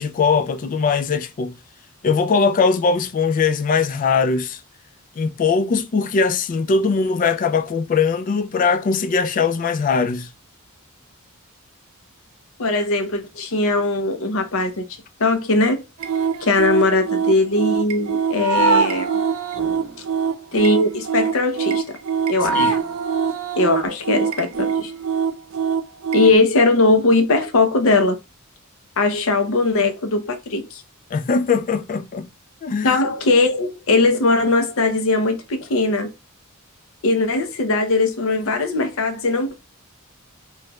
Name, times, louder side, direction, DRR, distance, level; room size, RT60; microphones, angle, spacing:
voice 1, 0.0-1.5 2.0-4.6 5.2-10.3 22.5-22.7 31.1-32.3 32.6-33.0, left 5 dB, 40° left, 0.3 m, -20 dB
voice 2, 12.6-14.9 15.2-15.8 16.4-19.1 20.5-22.0 22.3-22.8 23.6-24.9 26.1-28.2 29.0-30.8 32.8-36.1 37.0-39.5, left 2 dB, 65° left, 0.7 m, -19 dB
sound 1, 16.0-26.4, right 6 dB, 70° right, 0.5 m, -23 dB
3.1 x 3.0 x 2.3 m
head